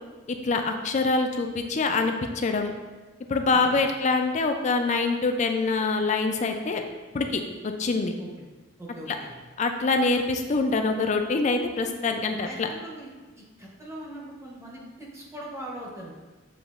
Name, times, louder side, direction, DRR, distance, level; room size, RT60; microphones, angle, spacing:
voice 1, 0.3-2.7 3.3-6.8 7.1-8.1 9.6-12.7, left 3 dB, 35° left, 5 dB, 0.3 m, -25 dB
voice 2, 3.5-3.8 8.2-8.3 8.8-9.3 12.4-16.1, right 1 dB, 15° right, -4 dB, 0.8 m, -41 dB
7.0 x 2.9 x 2.4 m, 1.3 s
head